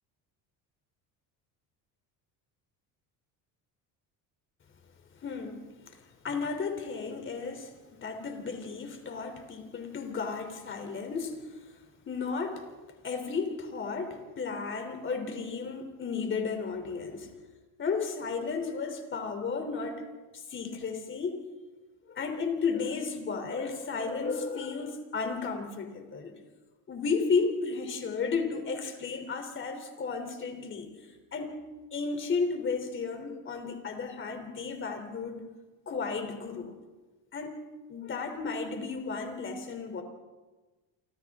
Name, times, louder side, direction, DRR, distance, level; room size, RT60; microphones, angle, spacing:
voice 1, 5.1-11.8 12.1-12.6 13.0-17.3 17.8-20.0 20.3-21.4 22.1-26.4 26.9-30.9 31.3-31.5 31.9-35.4 35.8-36.7 37.3-37.6 37.9-40.0, left 4 dB, 30° left, 5 dB, 3.3 m, -33 dB
28.0 x 26.0 x 3.7 m, 1.2 s
cardioid pair, 150°, 38 cm